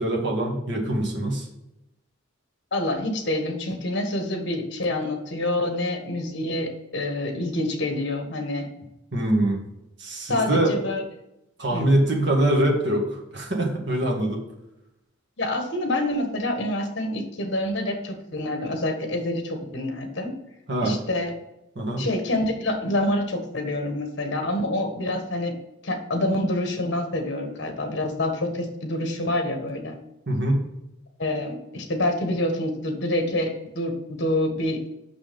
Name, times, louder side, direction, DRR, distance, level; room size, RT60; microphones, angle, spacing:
voice 1, 0.0-1.5 9.1-9.6 10.0-10.7 11.6-14.4 20.7-21.0 21.7-22.1 30.3-30.6, right 1 dB, 55° right, 0 dB, 1.8 m, -23 dB
voice 2, 2.7-8.7 10.3-11.0 11.7-11.9 15.4-20.3 20.8-21.3 22.0-25.5 25.8-30.0 31.2-34.8, left 1 dB, 60° left, 5 dB, 1.4 m, -27 dB
6.1 x 6.0 x 5.2 m, 0.89 s
head